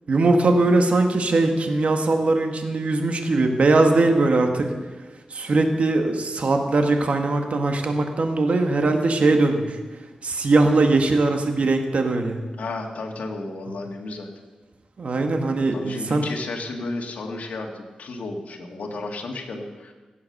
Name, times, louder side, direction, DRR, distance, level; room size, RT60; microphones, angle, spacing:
voice 1, 0.1-4.7 5.3-9.8 10.2-12.4 15.0-16.3, right 2 dB, 60° right, 4 dB, 1.7 m, -20 dB
voice 2, 12.6-14.3 15.7-19.9, left 2 dB, 85° left, 2 dB, 1.9 m, -33 dB
16.0 x 8.4 x 6.6 m, 1.3 s
wide cardioid pair, 85°, 2 cm